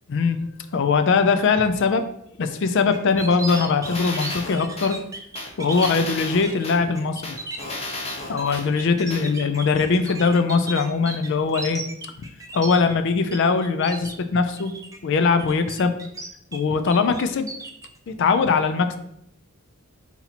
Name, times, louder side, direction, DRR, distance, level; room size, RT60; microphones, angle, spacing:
voice 1, 0.7-2.1 2.4-5.0 5.6-7.4 8.3-11.8 12.5-14.8 15.0-15.9 16.5-17.5 18.1-19.0, left 4 dB, 60° left, 9 dB, 0.4 m, -21 dB
sound 1, 2.9-5.9 6.4-6.6 7.0-13.4 13.6-14.2 14.6-15.0 15.4-16.6 16.9-17.9, right 3 dB, 15° right, 0.4 m, -35 dB
sound 2, 3.5-4.9 5.3-6.8 7.2-8.6 9.1-9.2, left 2 dB, 30° left, 0.9 m, -32 dB
4.1 x 2.9 x 4.1 m, 0.75 s
head